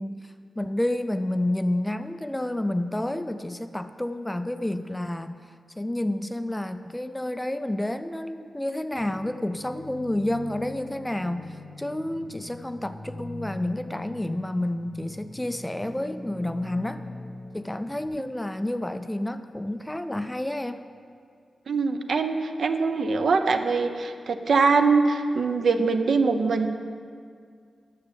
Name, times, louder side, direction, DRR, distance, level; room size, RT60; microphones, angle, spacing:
voice 1, 0.0-5.4 5.8-17.0 17.5-20.8, left 1 dB, 10° left, 10 dB, 0.3 m, -30 dB
sound 1, 9.0-18.1, left 2 dB, 10° right, 1.1 m, -42 dB
voice 2, 21.7-26.7, right 4 dB, 60° right, 7 dB, 0.6 m, -23 dB
9.5 x 6.6 x 6.9 m, 2.2 s
wide cardioid pair, 140°, 0 cm